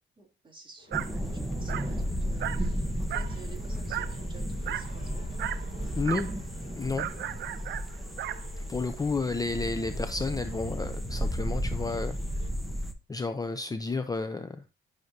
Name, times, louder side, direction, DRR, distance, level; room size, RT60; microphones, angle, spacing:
voice 1, 0.2-5.4 6.2-6.4 7.0-7.2, right 4 dB, 25° right, 3.1 m, -52 dB
sound 1, 0.8-12.5, left 4 dB, 40° left, 4.9 m, -54 dB
sound 2, 0.9-12.9, equal, ahead, 1.0 m, -33 dB
Dog, 0.9-1.1 1.7-1.9 2.4-2.7 3.1-3.4 3.9-4.2 4.7-4.9 5.4-5.7 6.0-6.3 7.0-8.5, right 12 dB, 65° right, 0.5 m, -35 dB
voice 2, 5.9-6.3 6.8-7.1 8.7-12.2 13.1-14.6, left 3 dB, 20° left, 0.6 m, -31 dB
9.4 x 6.4 x 2.8 m
cardioid pair, 90°, 20 cm